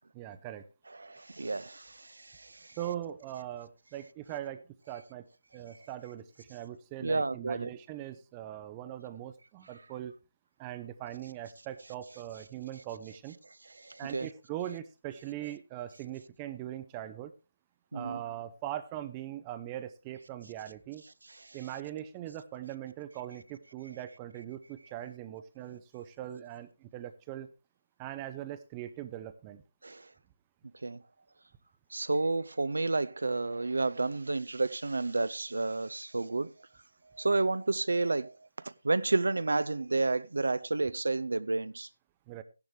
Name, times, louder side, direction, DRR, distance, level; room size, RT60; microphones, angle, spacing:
voice 1, 0.1-0.7 2.8-4.6 4.9-5.3 5.5-10.1 10.6-13.4 14.0-17.3 17.9-21.0 21.5-27.5 28.0-29.6 42.3-42.4, right 12 dB, 15° right, 0.5 m, -41 dB
voice 2, 0.9-2.8 5.6-5.7 7.0-7.7 13.6-14.3 17.9-18.2 21.2-21.6 29.8-30.1 30.8-31.0 31.9-36.5 37.1-41.9, right 3 dB, 70° right, 0.5 m, -31 dB
14.0 x 10.5 x 3.3 m
figure-of-eight pair, 155°, 0 cm